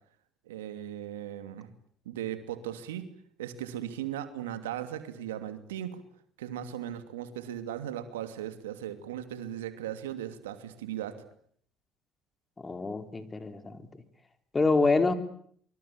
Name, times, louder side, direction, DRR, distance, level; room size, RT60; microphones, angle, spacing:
voice 1, 0.5-1.7 2.0-3.1 3.4-6.0 6.4-11.2, right 11 dB, 85° right, 10 dB, 2.7 m, -37 dB
voice 2, 12.6-13.9 14.5-15.1, left 3 dB, 25° left, 8 dB, 4.0 m, -26 dB
25.0 x 24.5 x 8.8 m, 0.62 s
hypercardioid pair, 65°, 0 cm